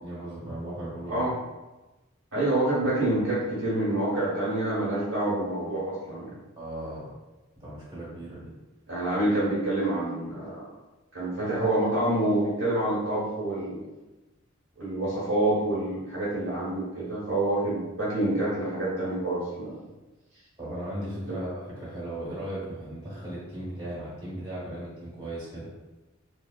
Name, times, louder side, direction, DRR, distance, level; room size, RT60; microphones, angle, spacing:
voice 1, 0.0-1.3 6.6-7.1 7.6-8.5 20.6-25.7, right 1 dB, 20° right, -10 dB, 1.2 m, -37 dB
voice 2, 2.3-6.3 8.9-10.6 11.1-13.8 14.8-19.8 21.3-21.4, right 1 dB, 65° right, -8 dB, 1.0 m, -27 dB
3.2 x 2.1 x 2.2 m, 1.1 s
head